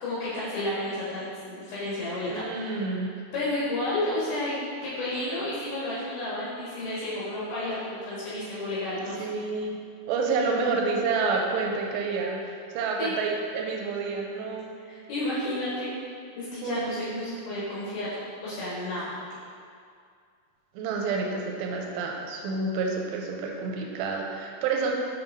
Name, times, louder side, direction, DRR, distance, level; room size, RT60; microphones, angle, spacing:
voice 1, 0.0-3.0 3.3-4.6 4.8-9.3 13.0-13.1 14.8-15.9 16.3-18.1 18.4-19.1, left 1 dB, 65° left, -10 dB, 3.1 m, -31 dB
voice 2, 2.3-3.1 9.2-9.8 10.1-12.4 12.7-14.7 16.6-17.6 20.8-24.9, right 4 dB, 85° right, 0 dB, 2.7 m, -29 dB
7.1 x 5.5 x 2.6 m, 2.3 s
omnidirectional pair, 4.9 m